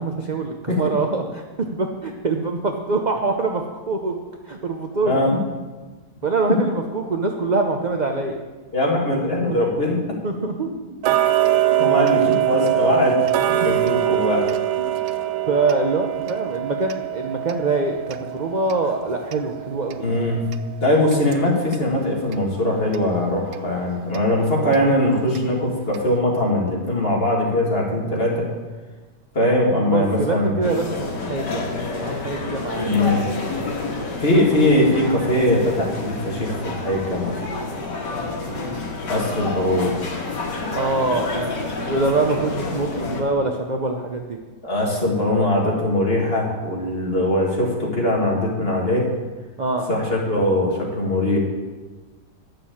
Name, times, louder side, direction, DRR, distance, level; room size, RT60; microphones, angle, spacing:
voice 1, 0.0-4.2 4.5-5.3 6.2-8.4 9.5-9.6 10.2-10.7 11.7-11.9 13.6-13.7 14.8-15.1 15.5-20.0 29.9-31.7 31.9-34.2 38.1-38.8 40.7-41.6 41.8-44.4 49.6-49.9, right 3 dB, 45° right, 3 dB, 0.5 m, -25 dB
voice 2, 5.0-5.4 8.7-10.0 11.8-13.2 13.5-14.5 20.0-20.4 20.8-28.5 29.3-30.6 32.8-33.2 34.2-37.4 39.1-40.0 44.6-49.1 49.9-51.4, left 1 dB, 35° left, -2 dB, 2.3 m, -21 dB
Tick-tock, 11.0-21.9 22.3-22.4 22.9-23.0 23.5-23.6 24.1-24.2 24.7-24.8 25.4-25.5 25.9-26.0, right 14 dB, 80° right, 1.2 m, -23 dB
sound 1, 30.6-43.2, left 3 dB, 75° left, 2.2 m, -29 dB
10.5 x 6.8 x 7.2 m, 1.3 s
omnidirectional pair, 1.9 m